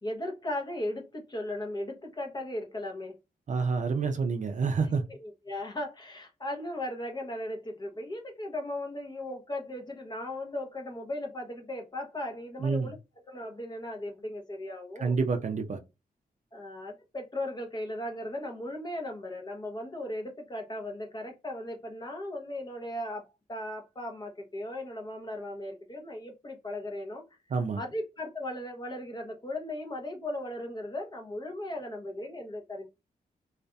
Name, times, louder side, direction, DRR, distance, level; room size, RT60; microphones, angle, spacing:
voice 1, 0.0-3.2 5.1-15.2 16.5-27.2 27.8-32.9, left 1 dB, 25° left, 0.8 m, -37 dB
voice 2, 3.5-5.0 12.6-12.9 15.0-15.8 27.5-27.8, right 5 dB, 50° right, 0.5 m, -28 dB
2.6 x 2.4 x 2.2 m
cardioid pair, 85°, 16 cm